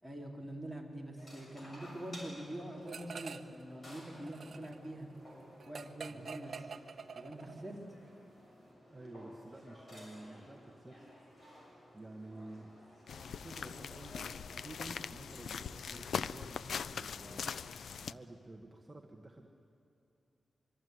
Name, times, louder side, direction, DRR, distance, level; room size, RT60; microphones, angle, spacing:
voice 1, 0.0-5.1 5.7-6.6 7.2-7.8, right 1 dB, 5° left, 0 dB, 3.8 m, -44 dB
sound 1, 1.2-17.7, equal, 40° left, 6.6 m, -56 dB
sound 2, 2.9-3.6 3.9-7.7, right 5 dB, 55° right, 1.0 m, -47 dB
voice 2, 8.9-11.0 11.9-12.7 13.3-17.5 17.9-19.5, right 2 dB, 15° right, 1 dB, 1.5 m, -51 dB
sound 3, 13.1-18.1, left 7 dB, 80° left, 0.5 m, -41 dB
24.0 x 24.0 x 9.6 m, 2.7 s
wide cardioid pair, 165°, 0 cm